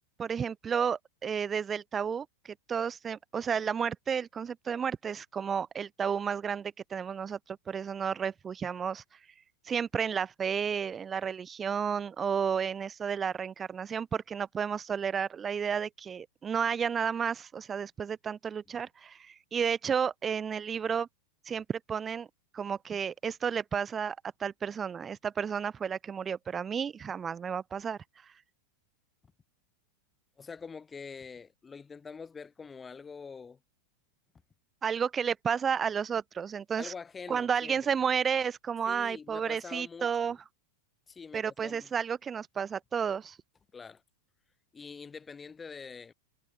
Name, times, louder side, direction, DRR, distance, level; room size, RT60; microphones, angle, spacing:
voice 1, 0.2-9.0 9.6-21.1 21.5-22.3 22.5-28.0 34.8-36.9 37.3-40.4 41.3-43.4, right 7 dB, 20° right, 0.7 m, -32 dB
voice 2, 30.4-33.6 36.8-38.0 38.9-40.4 41.1-41.9 43.7-44.0 44.7-46.1, left 5 dB, 15° left, 0.8 m, -45 dB
figure-of-eight pair, 90°, 0 cm